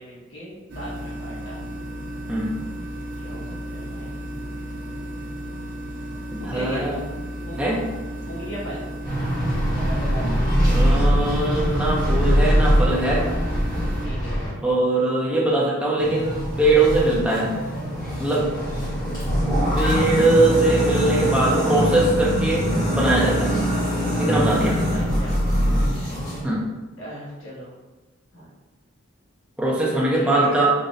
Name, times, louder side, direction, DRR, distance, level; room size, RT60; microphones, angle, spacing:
voice 1, 0.0-1.6 3.2-4.2 6.4-6.9 7.4-7.7 8.3-8.8 14.0-14.4 24.9-25.4 27.0-27.7 28.3-28.5 29.9-30.6, equal, 70° left, -8 dB, 1.3 m, -38 dB
sound 1, 0.7-14.1, equal, 55° right, 0.7 m, -34 dB
voice 2, 6.3-7.0 7.6-7.8 10.6-13.3 14.6-17.6 18.2-18.5 19.8-23.6 24.2-25.0 26.4-26.7 29.6-30.7, right 2 dB, 5° right, -5 dB, 0.6 m, -21 dB
sound 2, 9.0-14.5 16.0-26.4, equal, 15° left, 1.3 m, -22 dB
3.9 x 3.0 x 2.6 m, 1.2 s
head